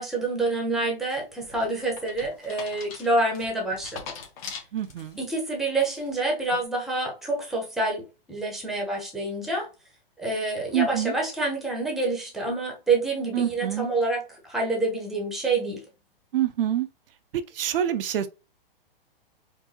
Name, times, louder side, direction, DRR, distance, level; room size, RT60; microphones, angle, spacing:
voice 1, 0.0-4.0 5.2-8.0 8.3-9.7 10.2-15.8, right 2 dB, ahead, 0.9 m, -27 dB
sound 1, 1.1-5.3 5.8-6.2, left 6 dB, 40° left, 1.2 m, -42 dB
voice 2, 4.7-5.2 10.7-11.1 13.3-13.9 16.3-16.9 17.3-18.3, right 11 dB, 70° right, 0.5 m, -26 dB
4.6 x 2.7 x 2.8 m
hypercardioid pair, 145°, 29 cm